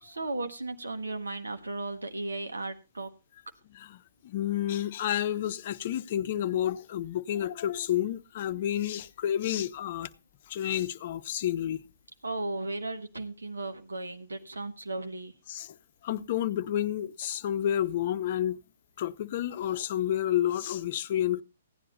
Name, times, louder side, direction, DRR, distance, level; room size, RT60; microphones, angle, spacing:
voice 1, 0.0-3.1 12.2-15.3, right 2 dB, 80° right, 1.5 m, -35 dB
voice 2, 3.7-10.1 10.5-11.8 15.5-15.7 16.0-18.6 19.0-21.4, left 11 dB, 45° left, 0.8 m, -30 dB
16.0 x 10.0 x 4.1 m
figure-of-eight pair, 125°, 0 cm